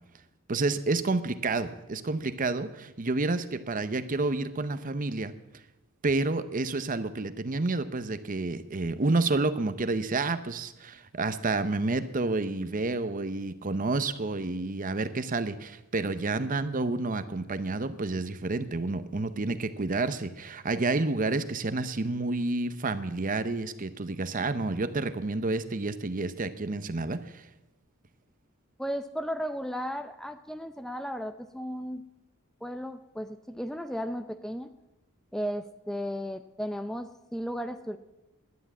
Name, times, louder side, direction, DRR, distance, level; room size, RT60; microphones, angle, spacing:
voice 1, 0.5-5.3 6.0-27.4, right 3 dB, 40° right, 12 dB, 0.7 m, -29 dB
voice 2, 28.8-32.0 32.6-34.7 35.3-38.0, equal, ahead, 8 dB, 0.5 m, -35 dB
11.5 x 10.0 x 8.2 m, 0.98 s
head